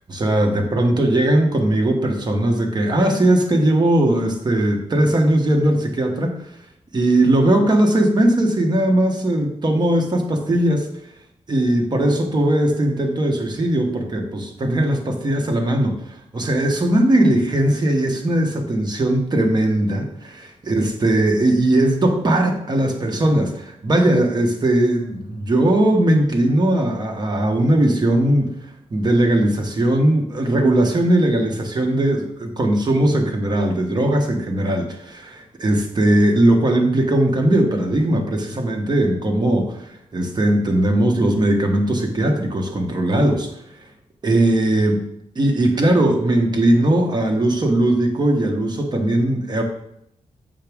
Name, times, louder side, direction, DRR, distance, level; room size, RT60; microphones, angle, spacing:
voice 1, 0.1-6.3 6.9-10.9 11.5-28.5 28.9-43.6 44.2-45.0 45.3-49.6, right 1 dB, 35° right, 2 dB, 1.3 m, -19 dB
7.5 x 5.9 x 3.6 m, 0.76 s
wide cardioid pair, 110°, 13 cm